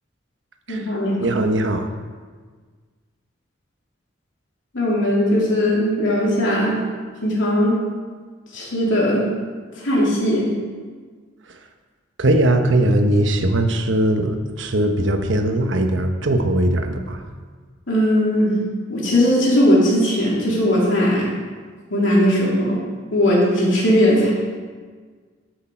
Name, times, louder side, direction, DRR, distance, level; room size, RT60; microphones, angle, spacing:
voice 1, 0.7-1.2 4.7-6.8 7.2-7.7 8.5-9.3 9.8-10.5 17.9-18.6 18.9-21.3 21.9-22.8 23.1-24.3, equal, 80° left, -4 dB, 2.9 m, -18 dB
voice 2, 1.2-1.9 12.2-17.2, right 1 dB, 75° right, 6 dB, 1.0 m, -19 dB
13.0 x 6.5 x 4.5 m, 1.5 s
head